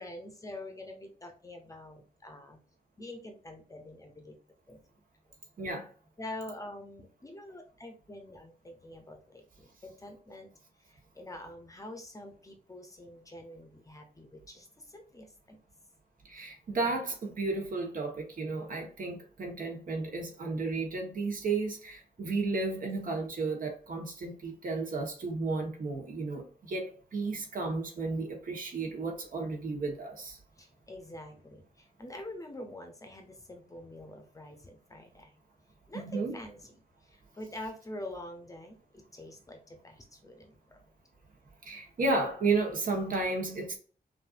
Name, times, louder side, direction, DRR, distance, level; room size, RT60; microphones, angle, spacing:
voice 1, 0.0-2.6 3.0-4.4 4.7-4.8 6.2-10.5 10.8-15.6 22.2-22.5 30.6-35.3 35.9-40.8, left 1 dB, 20° left, 0.7 m, -46 dB
voice 2, 5.6-5.9 16.2-30.4 35.9-36.4 41.6-43.8, right 3 dB, 60° right, 1.3 m, -33 dB
5.7 x 2.6 x 2.5 m
wide cardioid pair, 170°, 16 cm